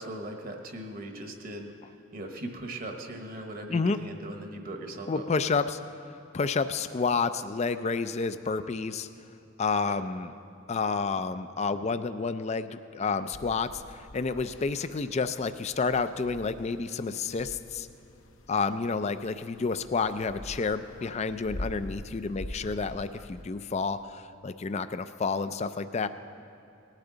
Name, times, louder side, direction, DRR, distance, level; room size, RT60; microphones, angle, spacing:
voice 1, 0.0-1.7 2.1-5.3 9.9-10.0, right 1 dB, 45° right, 4 dB, 1.1 m, -39 dB
voice 2, 5.1-5.8 6.3-9.1 9.6-10.3 10.7-17.9 18.5-26.1, left 4 dB, 35° left, 11 dB, 0.4 m, -30 dB
sound 1, 13.3-23.4, left 1 dB, 70° left, 0.8 m, -45 dB
18.5 x 11.5 x 3.9 m, 2.9 s
head